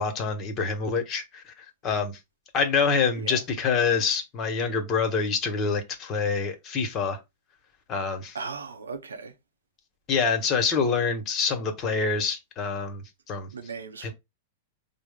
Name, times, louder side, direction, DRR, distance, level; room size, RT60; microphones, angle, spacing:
voice 1, 0.0-1.4 1.8-2.2 2.5-7.2 7.9-8.4 10.1-13.0 13.3-13.5 14.0-14.1, left 5 dB, 35° left, 1.0 m, -26 dB
voice 2, 8.3-9.3 13.5-14.1, right 5 dB, 85° right, 0.6 m, -37 dB
4.6 x 2.0 x 3.5 m
hypercardioid pair, 100°, 0 cm